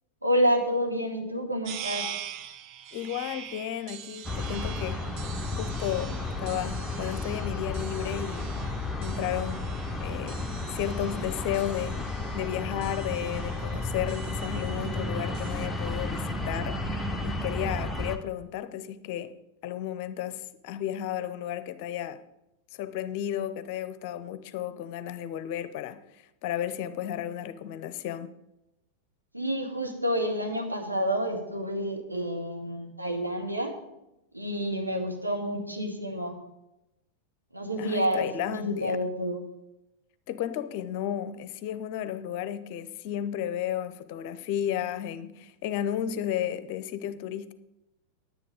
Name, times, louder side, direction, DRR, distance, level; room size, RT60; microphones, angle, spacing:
voice 1, 0.2-2.0 29.3-33.7 34.3-36.4 37.5-39.4, equal, 85° right, 1.6 m, -29 dB
sound 1, 1.6-15.7, right 10 dB, 40° right, 0.6 m, -44 dB
voice 2, 2.9-5.1 5.6-8.6 9.0-9.6 10.0-12.0 12.3-16.8 17.2-19.3 19.6-22.2 22.7-28.3 37.8-39.0 40.3-47.5, left 11 dB, 45° left, 0.7 m, -33 dB
sound 2, 4.2-18.2, left 2 dB, 5° left, 0.9 m, -33 dB
9.9 x 9.9 x 5.1 m
figure-of-eight pair, 90°, 0 cm